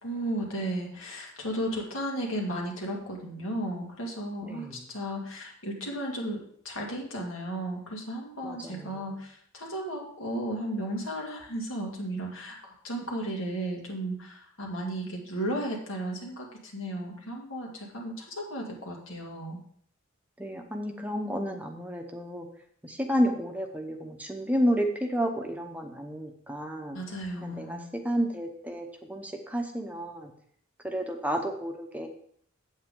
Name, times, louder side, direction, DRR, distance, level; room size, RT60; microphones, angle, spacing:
voice 1, 0.0-19.6 26.9-27.9, right 1 dB, 80° left, -1 dB, 2.4 m, -34 dB
voice 2, 4.4-4.9 8.4-9.0 20.4-22.5 22.8-27.0 27.4-30.3 30.8-32.1, equal, 10° right, 3 dB, 0.9 m, -31 dB
8.6 x 8.4 x 3.8 m, 0.63 s
head